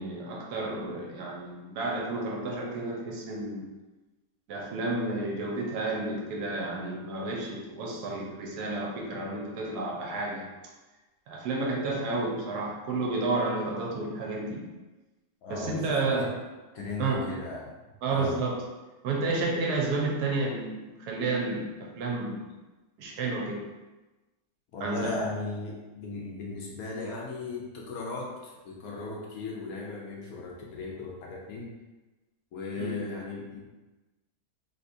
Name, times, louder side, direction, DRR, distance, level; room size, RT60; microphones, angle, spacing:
voice 1, 0.0-3.7 4.5-10.5 11.3-14.7 15.5-16.3 17.0-17.2 18.0-18.6 19.0-22.4 23.0-23.6 24.8-25.2 32.8-32.9, right 3 dB, 75° right, -1 dB, 1.2 m, -31 dB
voice 2, 15.4-16.3 16.7-17.7 18.1-18.4 24.7-31.7 32.5-33.6, left 3 dB, 70° left, -2 dB, 1.0 m, -37 dB
3.5 x 2.8 x 2.6 m, 1.1 s
omnidirectional pair, 1.8 m